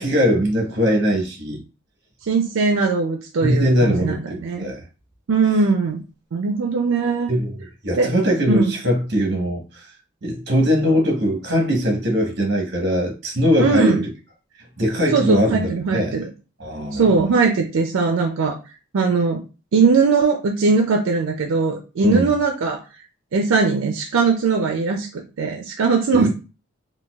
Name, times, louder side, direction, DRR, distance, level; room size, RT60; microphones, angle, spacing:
voice 1, 0.0-1.6 3.4-4.8 7.3-9.8 10.2-14.0 14.8-16.2 16.6-17.0 22.0-22.3 26.1-26.3, equal, 55° right, 1.0 m, -21 dB
voice 2, 2.2-4.7 5.3-6.0 6.3-7.3 8.0-8.1 8.5-8.7 13.6-14.0 15.1-16.3 16.9-18.6 18.9-19.4 19.7-22.8 23.3-26.3, right 4 dB, 85° right, 0.4 m, -20 dB
3.9 x 2.2 x 2.3 m
head